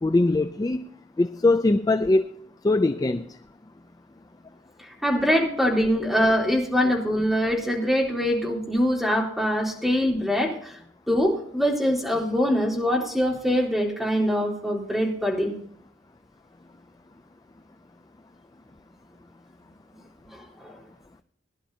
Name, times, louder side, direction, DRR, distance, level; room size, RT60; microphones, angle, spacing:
voice 1, 0.0-0.9 1.2-2.4 2.6-3.3, left 2 dB, 20° left, 11 dB, 0.4 m, -21 dB
voice 2, 4.8-10.8 11.1-15.5 20.3-20.7, equal, ahead, -3 dB, 3.8 m, -23 dB
21.0 x 11.0 x 2.7 m, 0.68 s
head